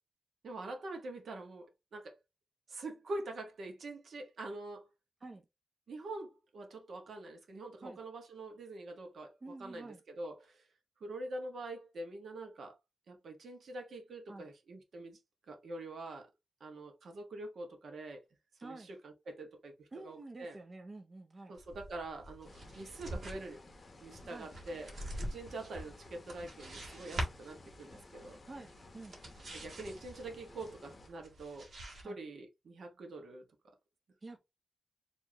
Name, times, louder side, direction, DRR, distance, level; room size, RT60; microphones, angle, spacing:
voice 1, 0.4-2.2 2.7-4.9 5.9-10.6 11.0-12.7 13.1-15.2 15.5-16.3 16.6-18.2 18.6-20.6 21.5-23.6 24.0-28.4 29.5-31.7 32.0-33.4, right 2 dB, 70° right, 1.3 m, -45 dB
voice 2, 9.4-10.0 14.3-14.5 18.6-18.9 19.9-21.5 24.3-24.5 28.4-29.2 32.0-32.2 34.2-34.4, right 2 dB, 30° right, 0.6 m, -49 dB
sound 1, 21.6-32.0, right 1 dB, 50° right, 1.8 m, -45 dB
sound 2, 22.4-31.1, left 2 dB, 35° left, 0.8 m, -56 dB
4.9 x 3.0 x 2.9 m
wide cardioid pair, 150°, 0 cm